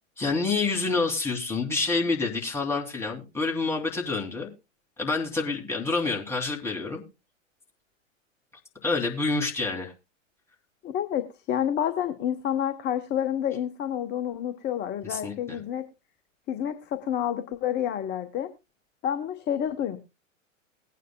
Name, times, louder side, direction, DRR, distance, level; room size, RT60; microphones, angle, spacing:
voice 1, 0.2-4.5 5.0-7.0 8.8-9.9 15.1-15.6, left 3 dB, 5° left, -1 dB, 2.8 m, -28 dB
voice 2, 10.8-15.9 16.5-18.5 19.0-20.0, left 10 dB, 25° left, 7 dB, 1.0 m, -29 dB
20.5 x 9.4 x 2.3 m, 0.26 s
hypercardioid pair, 105°, 39 cm